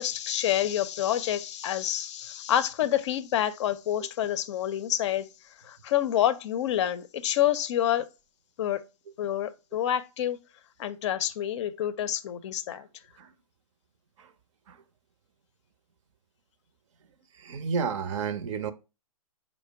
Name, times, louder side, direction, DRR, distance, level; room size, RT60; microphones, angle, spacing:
voice 1, 0.0-5.3 5.6-8.1 8.6-8.8 9.2-10.4 10.8-12.9, left 11 dB, 55° left, 0.5 m, -28 dB
voice 2, 17.4-18.7, right 6 dB, 55° right, 0.6 m, -31 dB
4.8 x 2.1 x 4.5 m
hypercardioid pair, 125°, 18 cm